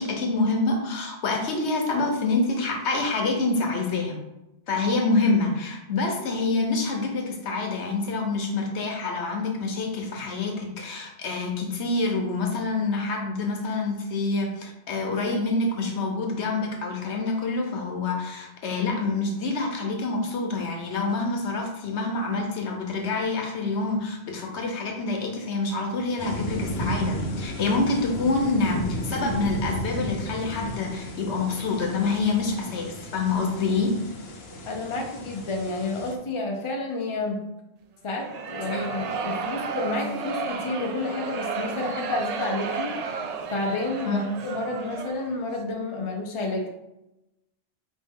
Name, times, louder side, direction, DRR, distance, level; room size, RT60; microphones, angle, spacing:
voice 1, 0.0-4.2 4.7-34.0 38.7-38.9 44.0-44.3, left 3 dB, 90° left, 2 dB, 1.1 m, -27 dB
sound 1, 26.2-36.1, equal, 65° left, 1.0 m, -34 dB
voice 2, 34.7-37.4 38.0-42.9 43.5-46.7, left 2 dB, 30° left, 1 dB, 0.7 m, -30 dB
sound 2, 38.2-45.4, right 5 dB, 55° right, 0.4 m, -33 dB
4.5 x 3.2 x 3.6 m, 0.91 s
omnidirectional pair, 1.1 m